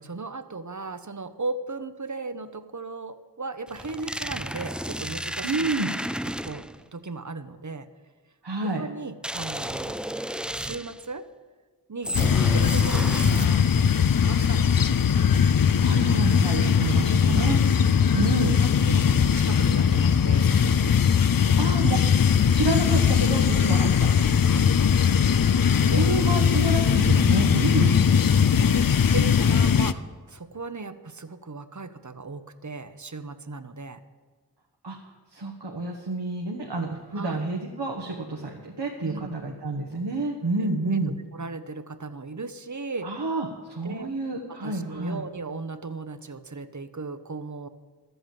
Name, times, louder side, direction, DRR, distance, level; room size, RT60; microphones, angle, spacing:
voice 1, 0.0-5.8 6.2-6.7 6.9-7.9 8.8-10.2 10.5-11.3 11.9-14.9 17.0-20.5 21.4-21.6 24.5-25.2 25.8-26.0 27.8-34.0 37.1-37.4 39.0-39.4 40.6-41.0 41.3-43.2 43.8-47.7, right 3 dB, 45° right, 11 dB, 0.8 m, -37 dB
sound 1, 3.7-6.8 9.2-11.1 12.0-13.8, right 1 dB, 5° right, 0.3 m, -32 dB
voice 2, 5.4-5.9 8.4-8.8 15.5-17.6 18.1-18.6 21.6-22.0 22.5-24.1 25.7-27.9 34.8-35.0 35.3-41.1 43.0-45.2, right 2 dB, 75° right, 0 dB, 1.3 m, -29 dB
sound 2, 12.1-29.9, left 7 dB, 60° left, 0.5 m, -20 dB
12.5 x 8.0 x 7.6 m, 1.4 s
wide cardioid pair, 40°, 40 cm